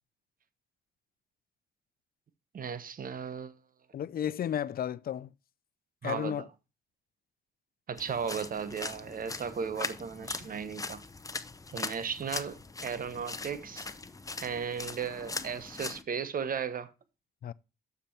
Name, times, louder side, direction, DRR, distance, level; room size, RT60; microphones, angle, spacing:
voice 1, 2.5-3.5 6.0-6.5 7.9-11.0 11.7-13.9 14.4-16.9, right 6 dB, 45° right, 1.1 m, -36 dB
voice 2, 3.9-5.3 6.0-6.5 17.4-17.5, left 10 dB, 50° left, 0.5 m, -33 dB
sound 1, 8.0-16.0, left 3 dB, 15° left, 0.7 m, -40 dB
6.9 x 6.8 x 4.4 m
cardioid pair, 90°, 20 cm